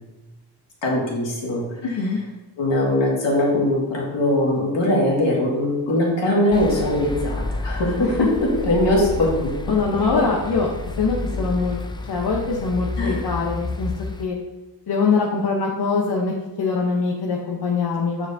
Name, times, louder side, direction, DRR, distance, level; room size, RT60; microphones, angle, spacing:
voice 1, 0.8-1.7 2.6-8.1 8.4-9.5 13.0-13.2, left 1 dB, 80° left, -3 dB, 2.1 m, -21 dB
voice 2, 1.8-2.2 8.0-8.3 9.7-10.7 11.0-11.8 12.1-13.9 14.2-14.4 14.9-18.3, left 4 dB, 60° left, -2 dB, 0.9 m, -23 dB
sound 1, 6.5-14.2, left 2 dB, 10° left, 0.3 m, -30 dB
9.0 x 4.8 x 2.7 m, 1.1 s
wide cardioid pair, 110°, 44 cm